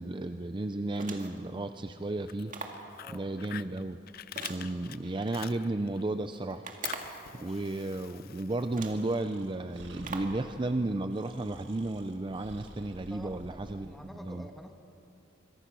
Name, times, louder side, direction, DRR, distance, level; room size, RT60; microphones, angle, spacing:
voice 1, 0.0-2.5 3.1-4.0 4.5-6.7 7.1-14.4, right 2 dB, 25° right, 9 dB, 0.5 m, -33 dB
sound 1, 0.9-1.5 2.5-2.9 4.4-5.3 6.6-7.3 8.2-8.3 8.7-9.1 10.0-10.4, right 4 dB, 45° right, 2.0 m, -41 dB
Fire, 2.1-6.0 6.3-9.1, left 11 dB, 50° left, 0.4 m, -45 dB
voice 2, 7.0-7.6 13.1-14.7, equal, ahead, 5 dB, 1.5 m, -49 dB
Breathing, 8.8-13.9, right 1 dB, 75° right, 2.1 m, -52 dB
26.0 x 22.5 x 6.1 m, 2.8 s
head